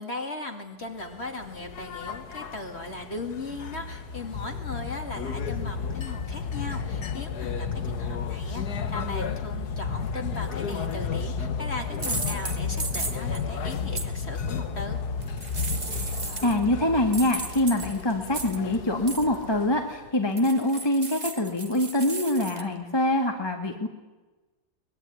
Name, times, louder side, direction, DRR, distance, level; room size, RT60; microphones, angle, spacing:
voice 1, 0.0-15.0, left 2 dB, 35° left, 4 dB, 3.0 m, -38 dB
sound 1, 0.9-20.1, left 5 dB, 60° left, 1.8 m, -33 dB
sound 2, 10.7-10.9 11.9-13.4 14.0-14.1 15.2-16.6 17.1-18.8 19.1-19.4 20.4-22.6, right 3 dB, 25° right, 1.5 m, -35 dB
voice 2, 16.4-23.9, left 1 dB, 15° left, 3 dB, 1.9 m, -25 dB
23.5 x 20.5 x 9.8 m, 1.2 s
omnidirectional pair, 2.0 m